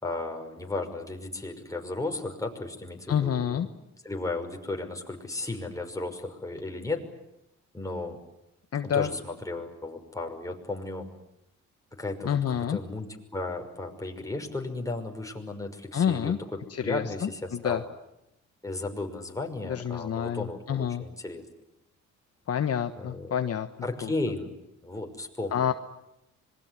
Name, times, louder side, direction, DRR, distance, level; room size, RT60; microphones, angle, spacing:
voice 1, 0.0-7.0 7.7-8.2 8.8-11.1 12.0-16.4 16.8-17.8 18.6-21.4 23.0-23.3 23.8-25.7, left 2 dB, 10° left, 3 dB, 5.9 m, -35 dB
voice 2, 3.1-3.7 8.7-9.1 12.2-12.8 15.9-16.4 16.7-17.8 19.6-21.0 22.5-23.7 24.0-24.1 25.5-25.7, left 9 dB, 50° left, 7 dB, 1.4 m, -28 dB
26.0 x 22.0 x 9.8 m, 0.87 s
cardioid pair, 90°, 30 cm